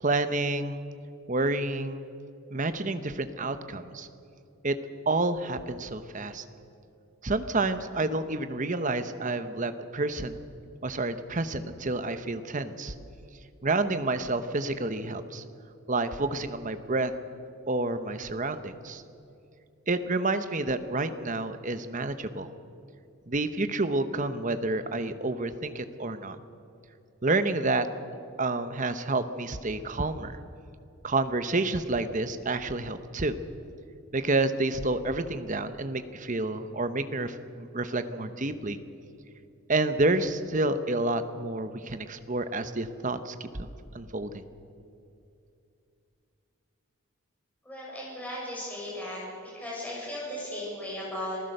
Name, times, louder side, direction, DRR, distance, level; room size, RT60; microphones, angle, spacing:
voice 1, 0.0-0.8 1.3-2.0 2.5-4.1 4.6-4.8 5.1-6.4 7.2-10.4 10.8-12.9 13.6-15.4 15.9-17.1 17.7-19.0 19.9-22.5 23.3-26.4 27.2-27.9 28.4-30.3 31.0-33.3 34.1-38.8 39.7-43.7 43.9-44.4, right 2 dB, 35° right, 10 dB, 0.9 m, -29 dB
voice 2, 47.6-51.4, left 1 dB, 5° left, -5 dB, 7.0 m, -36 dB
26.5 x 15.5 x 6.7 m, 2.7 s
head